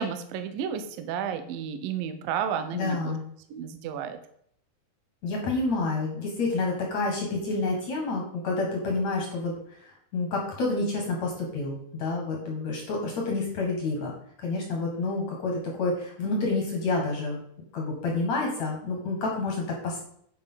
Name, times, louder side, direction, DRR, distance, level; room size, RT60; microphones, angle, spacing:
voice 1, 0.0-3.1 3.5-4.2, right 8 dB, 80° right, 8 dB, 2.0 m, -32 dB
voice 2, 2.7-3.2 5.2-14.1 14.4-17.4 17.7-20.0, left 3 dB, 55° left, 0 dB, 2.2 m, -29 dB
10.5 x 5.5 x 5.7 m, 0.67 s
omnidirectional pair, 5.3 m